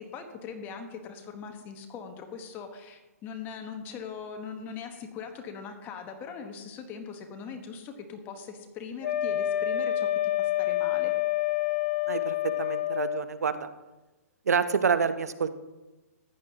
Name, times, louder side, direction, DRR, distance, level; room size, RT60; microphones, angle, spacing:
voice 1, 0.0-10.1 10.4-11.1, left 6 dB, 25° left, 6 dB, 1.2 m, -41 dB
Wind instrument woodwind instrument, 9.0-13.3, left 13 dB, 50° left, 0.9 m, -28 dB
voice 2, 12.1-13.7 14.5-15.5, right 6 dB, 85° right, 12 dB, 0.8 m, -27 dB
14.5 x 11.0 x 2.9 m, 1.1 s
hypercardioid pair, 145°, 8 cm